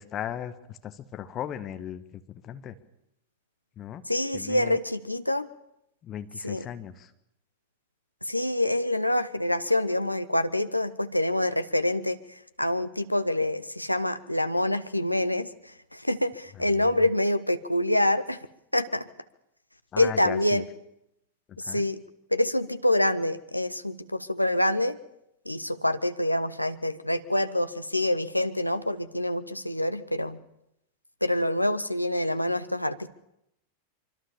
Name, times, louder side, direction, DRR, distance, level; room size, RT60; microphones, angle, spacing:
voice 1, 0.0-2.8 3.8-4.0 4.3-4.8 6.0-7.1 16.7-17.0 19.9-20.6 21.5-21.8, left 10 dB, 30° left, 10 dB, 1.7 m, -37 dB
voice 2, 4.1-5.5 6.4-6.7 8.2-18.4 18.7-19.1 20.0-20.6 21.6-22.0 22.3-25.0 25.4-30.4 31.2-33.1, left 1 dB, 85° left, 10 dB, 1.2 m, -26 dB
24.5 x 24.5 x 7.2 m, 0.81 s
figure-of-eight pair, 90°, 0 cm